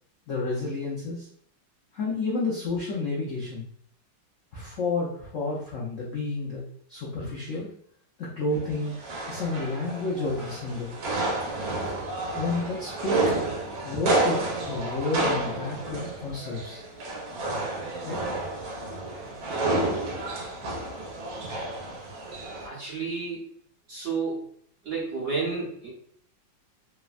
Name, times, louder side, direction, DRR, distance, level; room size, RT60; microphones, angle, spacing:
voice 1, 0.3-1.3 1.9-3.6 4.5-7.7 8.2-8.9 9.3-10.9 12.3-13.2 13.8-16.8 18.0-18.2, left 3 dB, 75° left, -4 dB, 0.7 m, -30 dB
sound 1, 8.5-22.7, right 2 dB, 90° right, 1.4 m, -30 dB
voice 2, 22.6-23.4 23.9-24.4 24.8-25.9, right 4 dB, 55° right, -6 dB, 1.0 m, -31 dB
3.2 x 2.1 x 2.3 m, 0.62 s
omnidirectional pair, 2.0 m